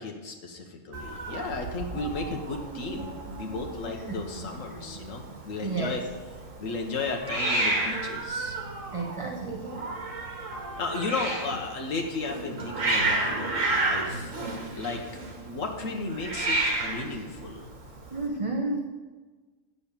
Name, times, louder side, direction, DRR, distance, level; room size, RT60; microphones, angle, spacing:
voice 1, 0.0-6.0 6.6-8.6 10.8-14.4 14.7-15.0 15.4-17.6, left 3 dB, 75° left, 2 dB, 1.6 m, -34 dB
Hiss, 0.9-18.3, right 2 dB, 75° right, 2.1 m, -32 dB
voice 2, 5.6-5.9 8.9-9.7 18.1-18.8, right 3 dB, 30° right, 2 dB, 0.8 m, -31 dB
8.7 x 6.9 x 7.3 m, 1.3 s
omnidirectional pair, 1.4 m